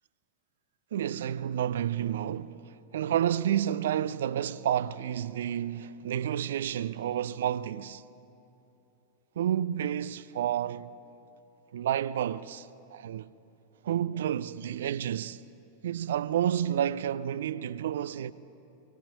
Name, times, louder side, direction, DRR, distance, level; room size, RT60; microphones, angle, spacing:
voice 1, 0.9-8.0 9.4-10.9 11.7-13.3 13.8-15.4 15.8-18.3, right 10 dB, 60° right, 0.4 m, -30 dB
25.0 x 19.5 x 3.0 m
figure-of-eight pair, 90°, 0 cm